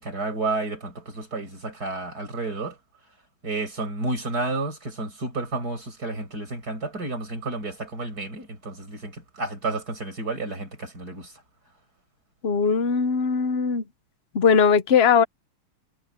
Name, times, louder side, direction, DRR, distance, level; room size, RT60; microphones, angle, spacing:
voice 1, 0.0-2.8 3.4-11.3, right 3 dB, 45° right, 7.6 m, -31 dB
voice 2, 12.4-13.8 14.3-15.2, left 6 dB, 60° left, 0.6 m, -19 dB
omnidirectional pair, 2.3 m